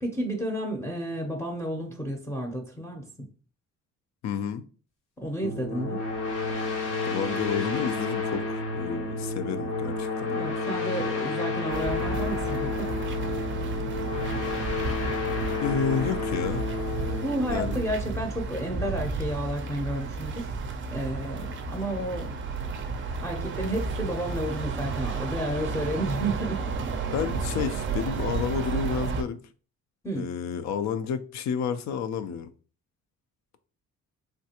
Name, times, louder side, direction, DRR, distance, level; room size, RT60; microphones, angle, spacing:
voice 1, 0.0-3.3 5.2-6.0 10.3-12.9 17.2-20.5 20.9-22.3 23.2-26.6 30.0-30.3, right 1 dB, 10° left, 0.6 m, -31 dB
voice 2, 4.2-4.6 7.0-10.3 15.6-16.7 17.5-17.8 27.1-29.4 30.1-32.5, left 7 dB, 65° left, 0.5 m, -30 dB
sound 1, 5.4-18.7, left 3 dB, 80° left, 1.0 m, -31 dB
sound 2, 11.7-29.2, right 4 dB, 40° right, 0.5 m, -32 dB
3.3 x 2.3 x 2.8 m
cardioid pair, 90°, 30 cm